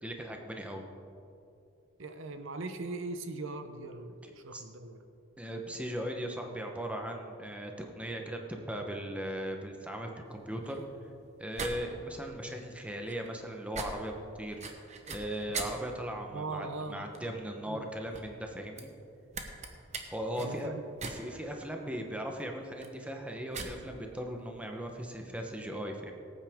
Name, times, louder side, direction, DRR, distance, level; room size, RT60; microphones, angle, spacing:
voice 1, 0.0-0.8 4.5-4.6 5.4-10.8 11.4-14.6 15.1-18.9 20.1-20.7 21.1-26.1, equal, 5° right, 2 dB, 0.9 m, -38 dB
voice 2, 2.0-5.0 16.3-17.1 17.7-17.8 20.4-20.8 21.8-21.9, right 3 dB, 65° right, 8 dB, 0.7 m, -40 dB
sound 1, 10.3-25.6, right 4 dB, 30° right, 1.0 m, -45 dB
17.5 x 8.9 x 3.6 m, 2.7 s
head